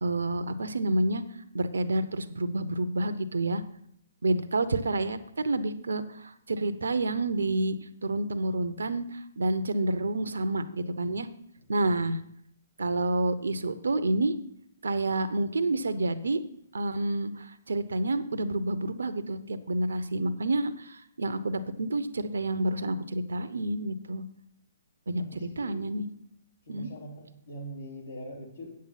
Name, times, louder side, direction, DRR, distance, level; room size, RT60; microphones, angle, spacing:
voice 1, 0.0-1.2 1.5-3.6 4.2-5.2 5.4-7.8 8.0-11.3 11.7-12.2 12.8-14.3 14.8-16.4 16.7-24.2 25.1-26.1 26.7-26.9, right 2 dB, 75° right, 11 dB, 0.7 m, -29 dB
voice 2, 11.6-12.1 25.2-25.9 26.7-28.8, equal, 75° left, -2 dB, 3.8 m, -43 dB
8.7 x 7.5 x 5.7 m, 0.71 s
figure-of-eight pair, 130°, 0 cm